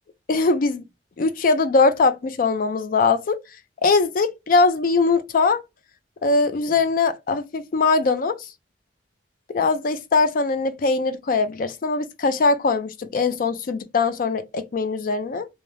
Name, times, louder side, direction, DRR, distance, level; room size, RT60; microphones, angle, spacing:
voice 1, 0.3-0.8 1.2-3.4 3.8-5.6 6.2-8.5 9.5-15.5, left 4 dB, 50° left, 0.4 m, -21 dB
2.5 x 2.0 x 3.1 m
head